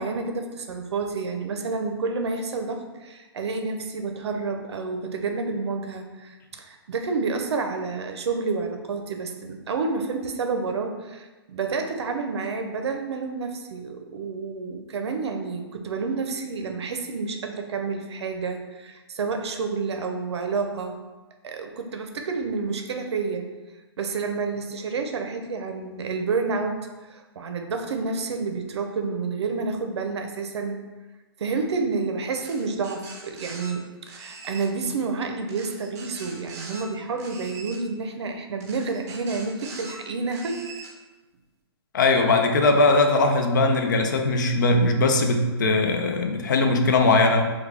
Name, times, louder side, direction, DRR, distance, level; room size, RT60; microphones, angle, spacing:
voice 1, 0.0-21.0 21.4-23.5 24.0-30.8 31.4-40.6, right 4 dB, 80° right, 4 dB, 0.5 m, -29 dB
sound 1, 32.4-33.7 34.1-34.7 35.5-36.8 37.2-37.8 38.6-40.0 40.3-40.9, right 4 dB, 40° right, 0.6 m, -42 dB
voice 2, 41.9-47.5, left 2 dB, 45° left, 5 dB, 0.4 m, -20 dB
3.5 x 2.2 x 3.2 m, 1.2 s
hypercardioid pair, 175°, 14 cm